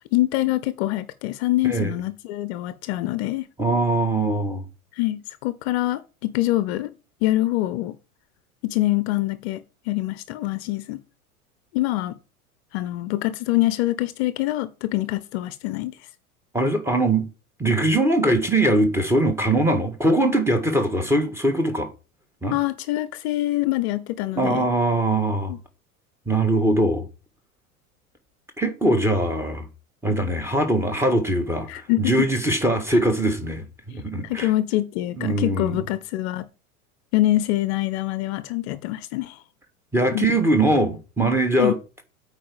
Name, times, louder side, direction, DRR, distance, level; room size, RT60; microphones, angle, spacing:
voice 1, 0.1-3.5 5.0-6.9 7.2-8.0 8.6-11.0 11.7-12.2 12.7-16.0 22.5-24.7 25.5-25.6 31.7-32.3 34.2-36.5 37.1-39.4 40.1-40.3 41.6-41.7, left 16 dB, 45° left, 0.8 m, -25 dB
voice 2, 3.6-4.6 16.5-17.3 17.6-21.9 22.4-22.6 24.4-25.5 26.3-27.1 28.6-29.7 30.0-34.5 35.2-35.8 39.9-41.8, right 1 dB, 5° right, 1.8 m, -21 dB
8.6 x 4.9 x 6.9 m
figure-of-eight pair, 85°, 43 cm